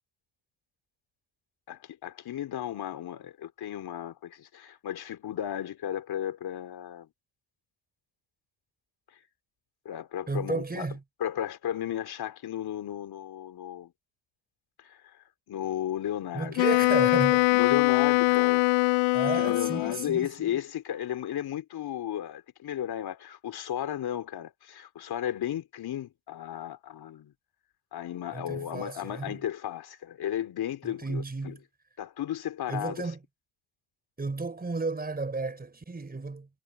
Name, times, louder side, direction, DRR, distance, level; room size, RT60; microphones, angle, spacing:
voice 1, 1.7-7.1 9.8-10.9 11.2-13.9 14.8-15.2 15.5-16.6 17.5-18.6 19.4-27.3 27.9-31.5 32.0-33.0, left 11 dB, 55° left, 3.4 m, -34 dB
voice 2, 10.3-11.0 16.3-17.8 19.1-20.5 28.3-29.4 30.8-31.6 32.7-33.2 34.2-36.5, right 3 dB, 20° right, 4.8 m, -33 dB
Wind instrument woodwind instrument, 16.6-20.1, left 24 dB, 80° left, 0.6 m, -23 dB
supercardioid pair, 80°, 45 cm